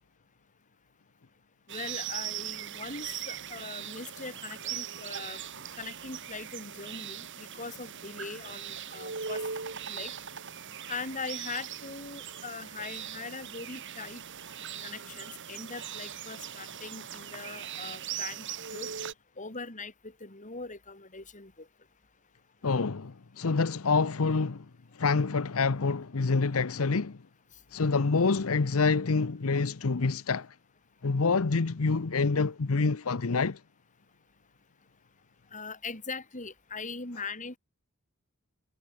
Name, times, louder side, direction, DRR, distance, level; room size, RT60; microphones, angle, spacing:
voice 1, 1.7-5.4 5.8-9.4 9.9-10.1 10.9-14.2 14.8-18.4 18.7-18.9 19.4-21.7 35.5-37.6, left 4 dB, 35° left, 4.9 m, -41 dB
sound 1, 1.7-19.1, right 8 dB, 55° right, 2.5 m, -40 dB
voice 2, 22.6-24.6 25.0-27.2 27.7-30.5 31.0-33.6, left 4 dB, 70° left, 0.8 m, -27 dB
head